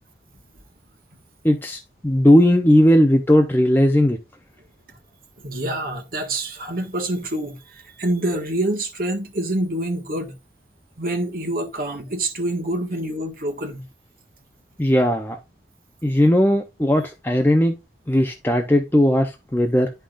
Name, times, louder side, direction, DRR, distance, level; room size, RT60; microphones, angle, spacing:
voice 1, 1.4-4.2 14.8-15.4 16.0-17.8 18.1-19.9, left 1 dB, 10° left, 0.6 m, -17 dB
voice 2, 5.4-10.3 11.0-13.9, right 1 dB, 50° right, 1.7 m, -26 dB
10.0 x 5.7 x 2.5 m
head